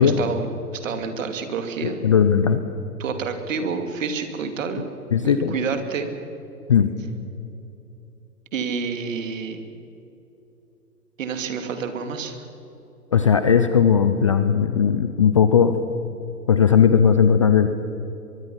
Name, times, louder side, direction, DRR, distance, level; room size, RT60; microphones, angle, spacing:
voice 1, 0.0-2.0 3.0-4.8 5.2-6.1 8.5-9.6 11.2-12.4, right 5 dB, 50° right, 7 dB, 2.8 m, -28 dB
voice 2, 1.8-2.6 5.1-5.5 6.7-6.9 13.1-15.7 16.5-17.7, left 7 dB, 20° left, 10 dB, 0.5 m, -17 dB
23.5 x 23.0 x 5.8 m, 3.0 s
figure-of-eight pair, 125°, 48 cm